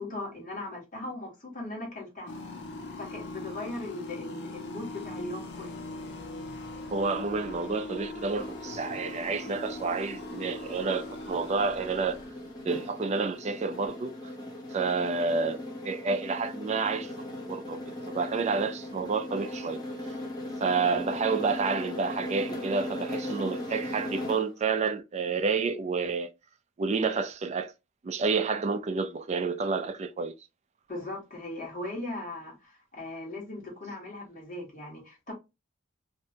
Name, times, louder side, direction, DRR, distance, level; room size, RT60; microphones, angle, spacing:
voice 1, 0.0-2.4 2.9-5.8 30.9-35.3, left 2 dB, 40° left, 1.3 m, -39 dB
sound 1, 2.3-12.6, left 2 dB, 60° left, 0.6 m, -41 dB
voice 2, 6.9-12.2 12.6-14.1 14.7-15.6 15.8-17.1 17.5-17.8 18.1-19.8 20.6-26.3 26.8-27.7 28.0-30.3, right 4 dB, 35° right, 0.3 m, -29 dB
sound 2, 8.4-24.6, left 1 dB, 20° left, 0.8 m, -38 dB
2.6 x 2.2 x 2.7 m
head